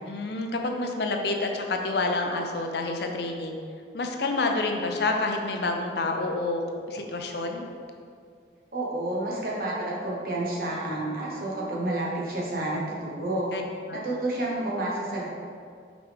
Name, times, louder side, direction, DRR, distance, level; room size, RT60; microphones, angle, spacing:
voice 1, 0.1-3.6 3.9-6.6 6.9-7.6 13.5-13.6 13.9-14.0, left 3 dB, 60° left, 3 dB, 0.6 m, -28 dB
voice 2, 8.7-13.5 13.9-15.3, right 1 dB, 50° right, -5 dB, 1.2 m, -30 dB
6.0 x 4.7 x 3.5 m, 2.2 s
head